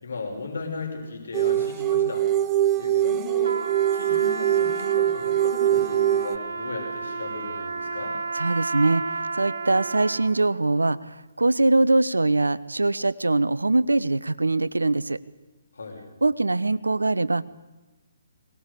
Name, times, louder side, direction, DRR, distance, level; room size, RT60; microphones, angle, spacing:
voice 1, 0.0-3.6 3.9-8.2 15.7-16.0, left 4 dB, 70° left, 2 dB, 6.3 m, -36 dB
sound 1, 1.3-6.4, right 12 dB, 20° right, 0.9 m, -23 dB
Trumpet, 3.4-10.4, right 4 dB, 70° right, 1.5 m, -32 dB
voice 2, 8.3-15.2 16.2-17.4, right 2 dB, 85° right, 16 dB, 0.9 m, -22 dB
22.5 x 19.0 x 8.4 m, 1.1 s
figure-of-eight pair, 140°, 0 cm